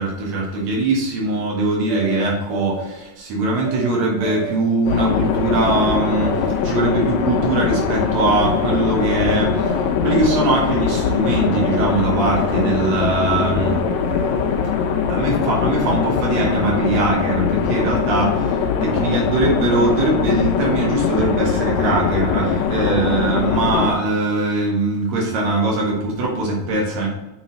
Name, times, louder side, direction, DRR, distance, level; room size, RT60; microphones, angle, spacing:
voice 1, 0.0-13.8 15.1-27.1, right 2 dB, 65° right, -3 dB, 2.8 m, -21 dB
sound 1, 1.9-3.0 3.6-3.9 4.2-4.8 5.6-5.9 6.2-6.7 7.5-7.9 8.1-8.8 9.5-9.9 10.1-10.8 11.7-12.0 12.2-13.0 13.6-14.6, right 8 dB, 85° right, 2.2 m, -32 dB
sound 2, 4.9-23.9, left 6 dB, 80° left, 1.8 m, -21 dB
7.0 x 4.1 x 4.0 m, 1.0 s
omnidirectional pair, 3.6 m